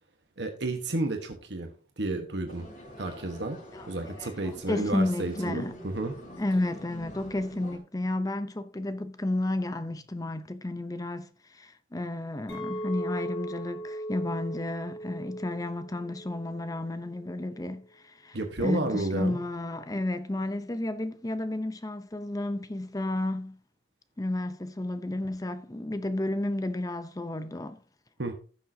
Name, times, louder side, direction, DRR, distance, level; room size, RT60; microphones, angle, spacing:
voice 1, 0.4-2.7 3.0-3.6 3.9-6.1 18.3-19.4 28.2-28.3, right 2 dB, 70° right, 1.2 m, -31 dB
sound 1, 2.5-7.8, equal, 40° left, 2.7 m, -45 dB
voice 2, 4.2-5.7 6.4-23.6 24.2-27.8, left 1 dB, 20° left, 0.6 m, -32 dB
Chink clink, 12.5-16.8 17.2-17.6, equal, 90° left, 5.9 m, -38 dB
15.5 x 6.5 x 2.7 m
head